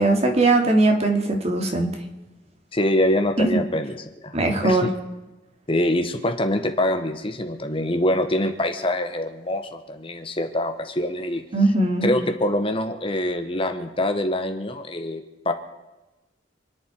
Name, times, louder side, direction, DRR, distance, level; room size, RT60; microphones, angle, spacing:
voice 1, 0.0-1.9 3.4-3.6 4.3-4.9 11.5-12.1, right 2 dB, 35° right, 3 dB, 2.5 m, -20 dB
voice 2, 2.7-4.0 4.2-4.9 5.7-11.4 12.0-15.5, left 1 dB, 30° left, 6 dB, 1.4 m, -24 dB
28.0 x 11.0 x 4.7 m, 1.1 s
head